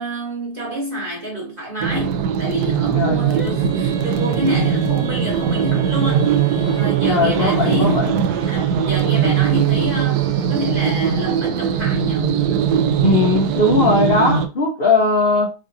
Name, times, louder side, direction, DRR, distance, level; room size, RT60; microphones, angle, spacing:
voice 1, 0.0-6.4 6.7-8.1 8.5-12.4, right 1 dB, 35° right, 1.0 m, -28 dB
sound 1, 1.8-14.5, right 8 dB, 70° right, 1.0 m, -20 dB
voice 2, 2.9-3.5 7.1-8.2 13.0-15.5, left 3 dB, 55° left, 0.6 m, -18 dB
Female singing, 3.3-12.1, right 1 dB, 15° left, 0.4 m, -37 dB
4.7 x 2.7 x 2.6 m
omnidirectional pair, 2.0 m